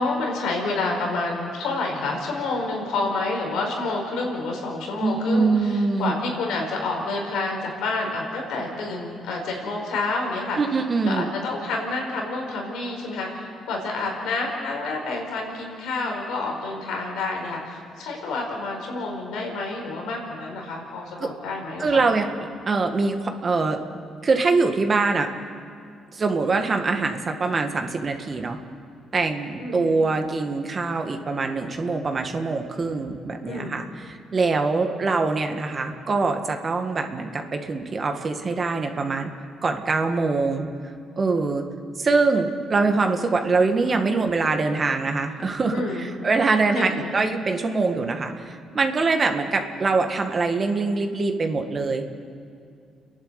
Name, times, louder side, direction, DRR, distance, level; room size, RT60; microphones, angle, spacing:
voice 1, 0.0-10.6 11.0-22.0 29.6-30.0 33.4-33.8 45.7-46.1 46.7-47.1, left 3 dB, 90° left, 1 dB, 4.7 m, -29 dB
voice 2, 5.0-6.1 10.5-11.3 21.2-21.3 21.8-22.3 22.7-23.8 24.2-25.3 26.1-28.6 29.1-39.3 39.6-40.7 41.2-41.6 42.0-52.1, right 3 dB, 40° right, 5 dB, 1.9 m, -23 dB
29.5 x 11.0 x 8.2 m, 2.4 s
cardioid pair, 90°, 0 cm